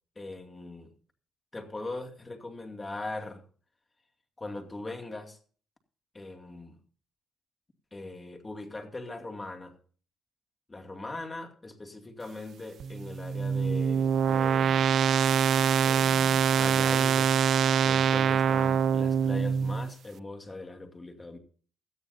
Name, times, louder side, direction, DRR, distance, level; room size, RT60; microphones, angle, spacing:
voice 1, 0.2-0.9 1.5-3.4 4.4-5.4 6.1-6.8 7.9-9.7 10.7-14.9 15.8-17.3 17.8-21.4, left 2 dB, 20° left, 5 dB, 2.4 m, -40 dB
sound 1, 12.8-19.9, right 7 dB, 60° right, 0.5 m, -24 dB
17.5 x 13.0 x 2.7 m, 0.43 s
cardioid pair, 90°, 0 cm